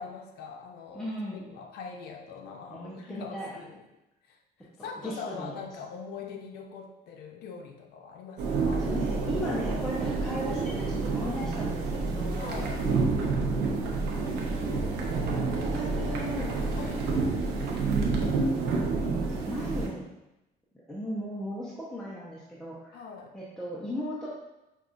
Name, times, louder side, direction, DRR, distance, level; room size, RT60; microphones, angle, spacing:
voice 1, 0.0-3.8 4.3-8.8 12.4-12.8 16.8-17.4 22.9-23.4, left 5 dB, 70° left, 2 dB, 0.6 m, -42 dB
voice 2, 0.9-1.5 2.7-3.5 4.8-5.5 8.8-12.6 14.3-15.1 15.6-16.6 19.0-20.1 20.7-23.0 23.3-24.4, equal, 5° left, -6 dB, 0.6 m, -37 dB
sound 1, 8.4-19.9, right 3 dB, 85° right, 0.7 m, -29 dB
5.2 x 2.4 x 2.5 m, 0.94 s
cardioid pair, 110°, 17 cm